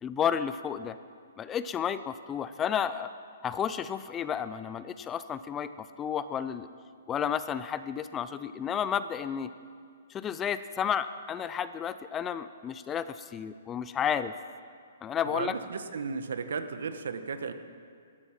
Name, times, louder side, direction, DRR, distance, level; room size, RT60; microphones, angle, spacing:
voice 1, 0.0-1.0 1.4-3.1 3.4-6.7 7.1-9.5 10.1-14.3 15.0-15.6, left 8 dB, 15° left, 13 dB, 0.4 m, -32 dB
voice 2, 15.3-17.5, right 5 dB, 75° right, 9 dB, 1.2 m, -35 dB
15.5 x 12.5 x 5.9 m, 2.2 s
hypercardioid pair, 165°, 0 cm